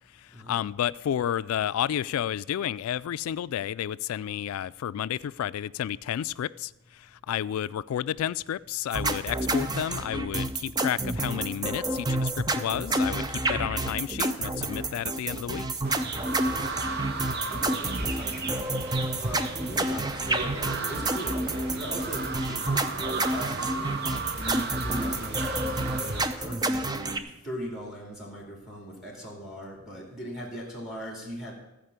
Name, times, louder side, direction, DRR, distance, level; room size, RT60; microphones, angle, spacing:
voice 1, 0.1-15.7, left 10 dB, 85° left, 0.3 m, -31 dB
sound 1, 8.9-27.2, right 2 dB, 20° right, 0.5 m, -29 dB
sound 2, 15.8-26.2, right 4 dB, 50° right, 0.9 m, -35 dB
voice 2, 17.5-18.8 19.2-20.6 20.9-24.0 24.4-31.5, equal, ahead, 2.3 m, -39 dB
Acoustic guitar, 20.5-25.7, right 2 dB, 15° left, 1.2 m, -49 dB
14.5 x 5.1 x 8.2 m
head